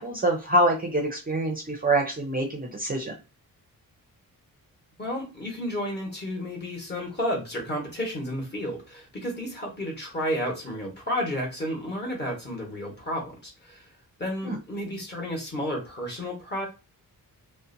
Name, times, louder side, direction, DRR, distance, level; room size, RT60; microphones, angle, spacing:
voice 1, 0.0-3.1 14.4-14.6, right 1 dB, 25° right, 1 dB, 0.5 m, -25 dB
voice 2, 5.0-13.9 14.2-16.7, equal, 30° left, -1 dB, 1.1 m, -32 dB
2.6 x 2.1 x 2.6 m, 0.30 s
wide cardioid pair, 145°, 36 cm